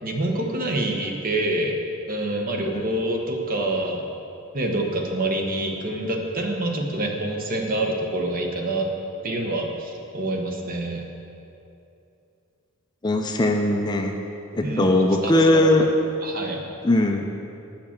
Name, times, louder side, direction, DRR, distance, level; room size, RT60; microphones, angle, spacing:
voice 1, 0.0-1.8 2.1-4.0 4.5-8.9 9.2-11.0 14.6-15.6 16.2-16.7, right 1 dB, 40° right, 1 dB, 1.0 m, -26 dB
voice 2, 13.0-14.1 14.5-15.9 16.8-17.2, left 1 dB, 20° left, 4 dB, 0.5 m, -19 dB
8.7 x 5.9 x 7.2 m, 2.7 s
head